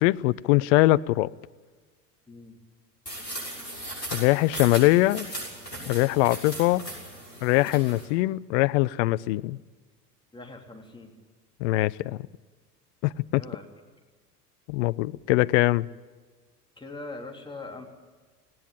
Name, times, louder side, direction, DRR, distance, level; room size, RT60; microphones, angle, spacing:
voice 1, 0.0-1.3 4.1-5.3 5.9-6.9 7.4-9.6 11.6-12.2 13.0-13.4 14.7-15.9, left 19 dB, 50° left, 18 dB, 0.6 m, -22 dB
sound 1, 3.1-8.1, right 1 dB, 85° left, 6.4 m, -38 dB
voice 2, 10.3-11.1 13.4-13.7 16.8-17.8, left 2 dB, 10° left, 1 dB, 3.4 m, -41 dB
18.5 x 17.0 x 8.9 m, 1.4 s
figure-of-eight pair, 70°, 47 cm